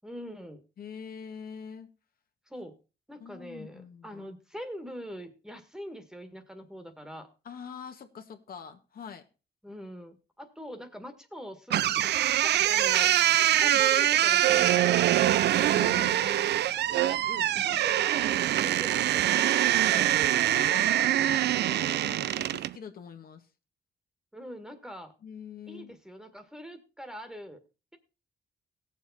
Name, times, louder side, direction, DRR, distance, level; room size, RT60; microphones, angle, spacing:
voice 1, 0.0-0.6 2.5-2.8 3.1-7.3 9.6-13.2 13.6-20.2 24.3-25.1 25.7-27.6, equal, 5° right, 1.8 m, -43 dB
voice 2, 0.8-1.9 3.2-4.2 7.4-9.2 13.3-13.8 15.7-16.6 17.6-17.7 20.5-23.5 25.2-25.9, left 6 dB, 60° left, 1.7 m, -44 dB
sound 1, 11.7-22.7, right 12 dB, 80° right, 0.5 m, -24 dB
18.0 x 7.2 x 4.2 m
cardioid pair, 125°, 17 cm